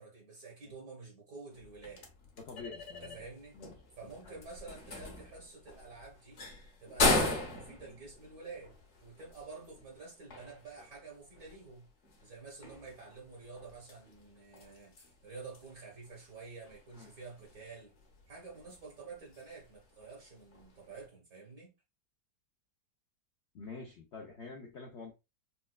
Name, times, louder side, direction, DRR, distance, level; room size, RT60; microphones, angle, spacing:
voice 1, 0.0-2.1 3.0-3.6 4.0-6.4 6.8-8.8 9.0-11.9 12.2-17.9 18.3-21.7, right 4 dB, 60° right, 1.4 m, -49 dB
sound 1, 1.5-21.1, left 2 dB, 50° left, 1.0 m, -39 dB
voice 2, 2.4-3.2 3.5-3.7 17.0-17.1 23.5-25.1, left 4 dB, 70° left, 0.6 m, -46 dB
4.2 x 2.2 x 2.2 m
omnidirectional pair, 1.9 m